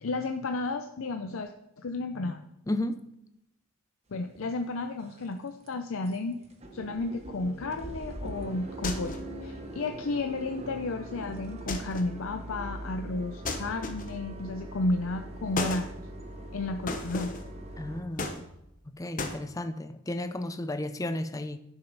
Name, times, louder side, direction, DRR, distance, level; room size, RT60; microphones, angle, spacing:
voice 1, 0.0-1.5 1.8-2.4 4.1-6.4 6.7-15.9 16.5-17.3, left 2 dB, 80° left, 0.6 m, -32 dB
voice 2, 2.7-3.1 17.8-18.3 18.9-21.6, left 1 dB, 15° left, 0.5 m, -33 dB
sound 1, 4.3-4.4 4.9-5.3 5.6-5.7 6.1-6.2 6.4-18.0, right 1 dB, 30° right, 1.0 m, -42 dB
sound 2, 8.8-9.4 11.7-12.2 13.4-14.3 15.6-15.9 16.9-17.5 18.2-18.8 19.2-19.4, left 3 dB, 40° left, 1.0 m, -34 dB
11.0 x 6.4 x 4.8 m
head